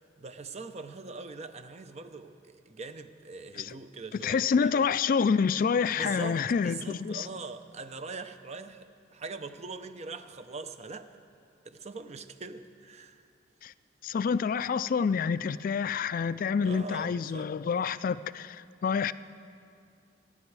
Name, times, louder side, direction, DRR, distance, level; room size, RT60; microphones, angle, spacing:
voice 1, 0.2-4.8 5.9-11.1 11.6-13.2 16.6-17.5, right 3 dB, 35° right, 0.7 m, -42 dB
voice 2, 4.1-7.3 13.6-13.7 14.0-19.1, left 6 dB, 50° left, 0.3 m, -28 dB
27.5 x 9.7 x 4.7 m
head